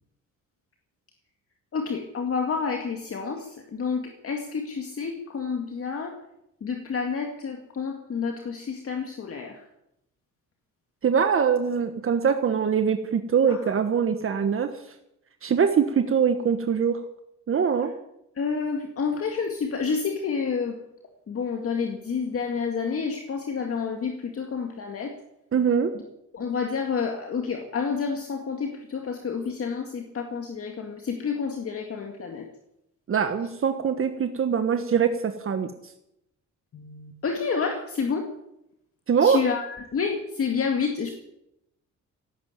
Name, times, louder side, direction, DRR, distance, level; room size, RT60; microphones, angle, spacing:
voice 1, 1.7-6.2 6.6-9.6 13.5-13.7 18.4-20.8 21.3-25.1 26.3-32.5 36.7-38.3 39.2-41.1, left 5 dB, 50° left, 3 dB, 2.1 m, -29 dB
voice 2, 11.0-14.7 15.4-17.0 17.5-17.9 25.5-25.9 33.1-35.7 39.1-39.4, right 7 dB, 45° right, 8 dB, 1.4 m, -23 dB
17.5 x 8.6 x 9.1 m, 0.82 s
cardioid pair, 90°, 30 cm